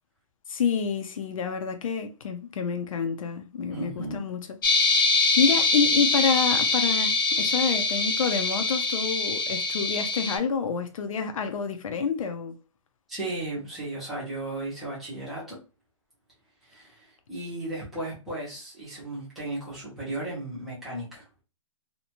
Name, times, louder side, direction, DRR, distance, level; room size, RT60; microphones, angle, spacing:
voice 1, 0.5-4.4 4.8-5.0 5.4-12.5, left 6 dB, 80° left, 0.5 m, -28 dB
voice 2, 3.7-4.2 13.1-15.6 16.6-21.2, right 2 dB, ahead, 0.5 m, -35 dB
sound 1, 4.6-10.4, left 3 dB, 40° left, 0.6 m, -24 dB
2.6 x 2.2 x 2.8 m
hypercardioid pair, 180°, 17 cm